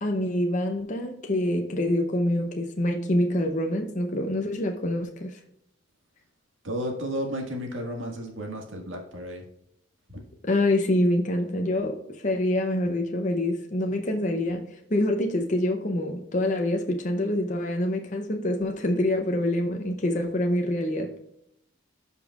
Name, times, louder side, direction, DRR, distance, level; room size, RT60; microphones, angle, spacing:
voice 1, 0.0-5.4 10.4-21.2, left 1 dB, 40° left, 0.7 m, -26 dB
voice 2, 6.6-9.5 10.1-10.2, equal, 75° right, 1.8 m, -33 dB
15.5 x 5.3 x 2.4 m
head